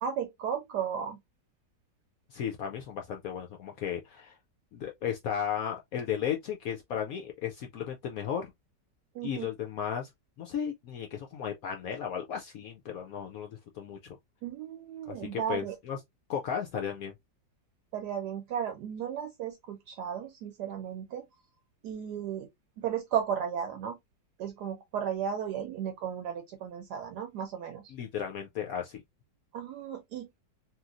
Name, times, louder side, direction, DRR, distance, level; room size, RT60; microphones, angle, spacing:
voice 1, 0.0-1.2 9.1-9.5 14.4-15.8 17.9-21.3 21.8-22.5 22.8-24.0 24.4-27.9 29.5-30.3, right 8 dB, 75° right, 1.1 m, -34 dB
voice 2, 2.3-4.4 4.7-8.5 9.2-10.1 10.4-14.2 15.1-16.0 16.3-17.1 27.9-29.0, left 8 dB, 75° left, 0.8 m, -35 dB
3.0 x 2.7 x 2.4 m
omnidirectional pair, 1.9 m